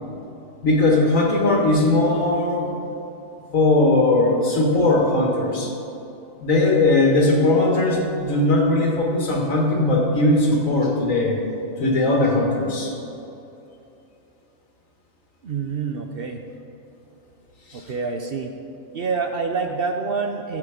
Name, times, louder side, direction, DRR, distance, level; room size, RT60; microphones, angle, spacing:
voice 1, 0.6-2.7 3.5-5.7 6.4-11.4 11.8-12.9 17.7-17.8, left 2 dB, 70° left, -1 dB, 2.1 m, -19 dB
voice 2, 15.4-16.4 17.7-18.5 18.9-20.6, right 5 dB, 55° right, 4 dB, 0.8 m, -27 dB
15.0 x 7.5 x 5.0 m, 2.9 s
omnidirectional pair, 1.4 m